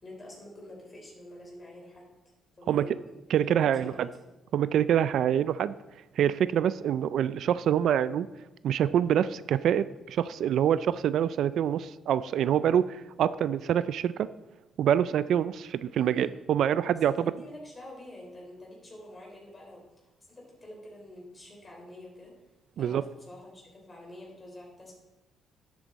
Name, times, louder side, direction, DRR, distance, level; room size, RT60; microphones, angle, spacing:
voice 1, 0.0-2.1 2.6-3.1 3.6-4.3 16.0-16.3 17.0-19.8 20.2-22.3 22.8-25.0, left 1 dB, 25° left, -2 dB, 4.2 m, -47 dB
voice 2, 3.3-4.1 4.5-5.7 6.2-8.3 8.6-14.3 14.8-17.3 22.8-23.0, right 9 dB, 70° right, 16 dB, 0.4 m, -26 dB
11.5 x 8.1 x 4.0 m, 1.0 s
cardioid pair, 90°, 0 cm